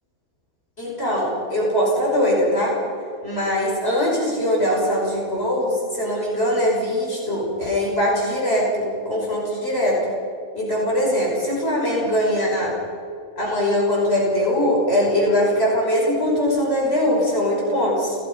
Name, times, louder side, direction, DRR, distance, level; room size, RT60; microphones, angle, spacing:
voice 1, 0.8-2.7 3.2-10.0 10.5-12.7 13.4-18.2, left 1 dB, 40° left, -4 dB, 6.2 m, -21 dB
27.5 x 18.5 x 5.4 m, 2.5 s
omnidirectional pair, 1.6 m